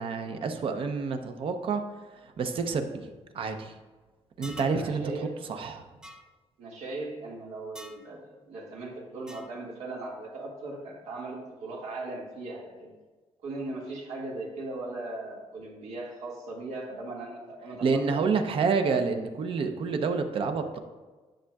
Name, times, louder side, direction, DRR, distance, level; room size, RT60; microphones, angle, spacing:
voice 1, 0.0-1.8 2.4-3.8 4.4-5.8 17.8-20.8, right 5 dB, 55° right, 6 dB, 0.7 m, -28 dB
sound 1, 4.4-4.8 6.0-6.2 7.8-8.0 9.3-9.6, equal, 5° right, 0.4 m, -45 dB
voice 2, 4.7-5.4 6.6-12.9 13.4-18.2, right 2 dB, 90° right, -2 dB, 1.8 m, -38 dB
10.0 x 6.2 x 2.3 m, 1.3 s
cardioid pair, 140°, 11 cm